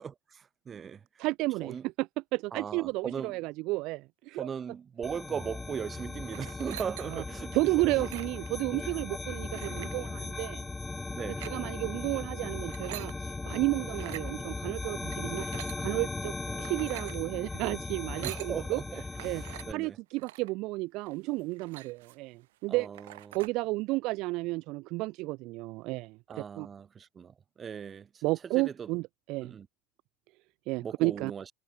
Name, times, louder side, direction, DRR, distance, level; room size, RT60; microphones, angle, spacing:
voice 1, 0.0-1.1 1.6-1.9 2.5-3.3 4.3-7.6 11.1-11.4 18.2-19.0 19.6-20.0 22.7-23.4 26.3-28.2 28.5-28.9 29.4-29.7 30.8-31.5, right 7 dB, 25° right, 2.1 m, -38 dB
voice 2, 1.2-4.5 7.1-7.2 7.5-10.6 11.5-18.8 19.2-19.4 19.7-22.9 23.3-26.7 28.2-29.5 30.7-31.3, right 22 dB, 55° right, 1.0 m, -32 dB
sound 1, 5.0-19.7, left 3 dB, 10° left, 2.6 m, -38 dB
sound 2, 6.3-7.3 7.9-8.5 9.5-10.0 11.2-11.6 12.5-13.1 13.9-14.3 15.1-15.8 16.5-17.2 18.0-18.5 19.2-19.7 20.2-20.5 21.1-21.2 21.4-22.3 22.6-22.7 22.9-23.5, right 17 dB, 70° right, 6.6 m, -45 dB
hypercardioid pair, 95°, 0 cm